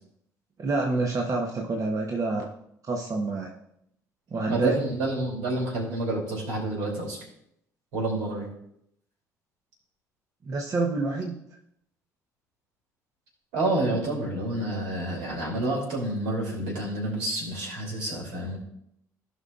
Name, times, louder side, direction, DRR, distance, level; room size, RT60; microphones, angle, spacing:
voice 1, 0.6-2.5 2.8-3.5 4.3-4.7 10.4-11.3, right 3 dB, 40° right, 1 dB, 1.2 m, -27 dB
voice 2, 4.5-7.2 7.9-8.5 13.5-18.6, right 2 dB, 70° right, -2 dB, 3.2 m, -29 dB
16.0 x 5.6 x 2.5 m, 0.76 s
hypercardioid pair, 55°, 9 cm